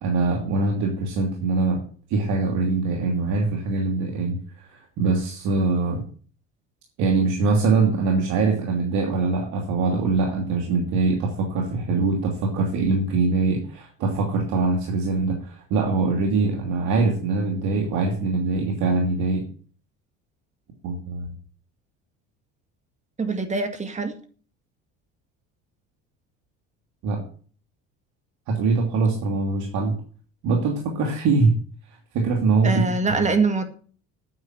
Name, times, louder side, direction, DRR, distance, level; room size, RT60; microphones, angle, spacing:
voice 1, 0.0-1.8 2.1-6.0 7.0-19.4 20.8-21.3 27.0-27.2 28.5-29.9 30.4-31.6 32.1-32.8, right 3 dB, 75° right, 1 dB, 2.8 m, -23 dB
voice 2, 23.2-24.2 32.6-33.6, right 3 dB, 25° right, 8 dB, 2.0 m, -23 dB
9.6 x 7.3 x 8.9 m, 0.44 s
supercardioid pair, 100°, 29 cm